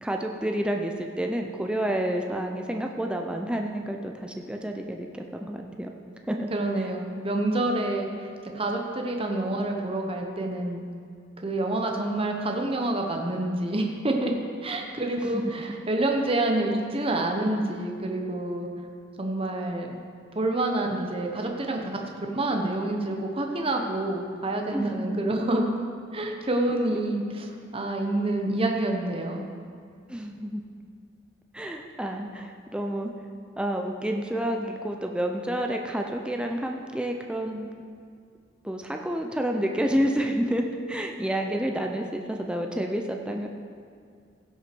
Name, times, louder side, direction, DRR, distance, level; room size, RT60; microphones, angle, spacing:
voice 1, 0.0-5.9 6.3-6.5 15.3-15.4 24.7-25.2 30.1-30.6 31.5-33.1 33.6-37.7 38.6-43.5, right 1 dB, 5° right, 2 dB, 0.5 m, -29 dB
voice 2, 6.5-8.3 8.5-10.8 11.4-14.3 14.6-18.7 19.2-20.0 20.3-22.0 22.3-25.7 26.1-29.5, right 2 dB, 30° right, 2 dB, 1.0 m, -27 dB
16.5 x 6.3 x 4.5 m, 2.2 s
head